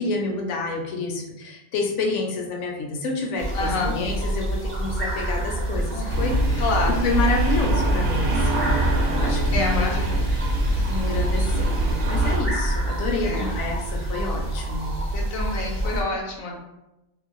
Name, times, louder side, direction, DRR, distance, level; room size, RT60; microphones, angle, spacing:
voice 1, 0.0-6.6 6.9-8.7 9.1-9.8 10.9-11.7 12.0-14.9, left 3 dB, 70° left, 2 dB, 0.9 m, -28 dB
sound 1, 3.4-16.0, right 1 dB, 35° right, 0.5 m, -27 dB
voice 2, 3.5-3.9 6.6-7.0 9.5-10.5 13.2-13.6 15.1-16.6, left 2 dB, 90° left, -1 dB, 1.1 m, -28 dB
sound 2, 6.1-12.4, right 1 dB, 60° right, 0.8 m, -24 dB
2.7 x 2.4 x 2.9 m, 0.96 s
omnidirectional pair, 1.3 m